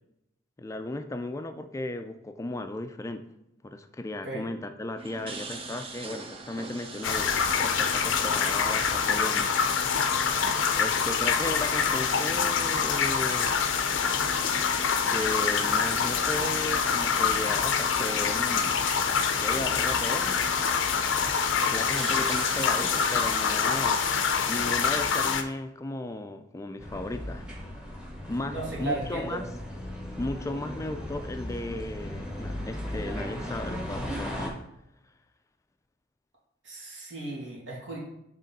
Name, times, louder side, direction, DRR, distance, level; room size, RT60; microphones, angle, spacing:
voice 1, 0.6-3.2 3.6-7.3 7.6-9.5 10.8-13.5 15.1-18.8 19.4-20.4 21.6-24.0 24.5-27.5 28.3-29.5 30.2-34.6, left 2 dB, 15° left, 8 dB, 0.3 m, -35 dB
sound 1, 5.0-24.0, right 3 dB, 30° right, 0.6 m, -43 dB
sound 2, 7.0-25.4, left 6 dB, 85° left, 0.5 m, -26 dB
sound 3, 26.8-34.5, equal, 5° right, 0.9 m, -37 dB
voice 2, 28.5-29.4 36.6-38.0, right 2 dB, 80° right, -4 dB, 2.2 m, -35 dB
6.5 x 3.6 x 4.0 m, 0.82 s
head